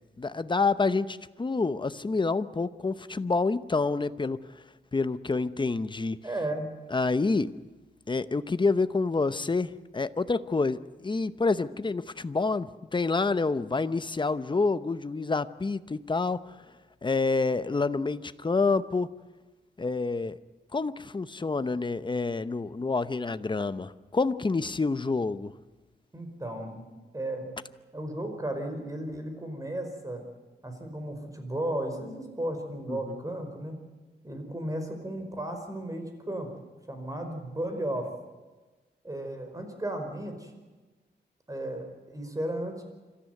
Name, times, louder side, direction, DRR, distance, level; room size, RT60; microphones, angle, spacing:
voice 1, 0.2-4.4 4.9-6.2 6.9-7.5 8.1-16.5 17.0-19.1 19.8-20.4 20.7-25.5 32.9-33.2, left 3 dB, 25° left, 13 dB, 0.8 m, -28 dB
voice 2, 6.2-6.7 26.1-26.8 27.1-27.5 27.9-30.2 30.6-33.8 34.2-36.5 36.9-38.1 39.0-40.5 41.5-42.8, right 1 dB, 20° right, 5 dB, 5.1 m, -34 dB
26.0 x 14.0 x 9.4 m, 1.2 s
wide cardioid pair, 100°, 18 cm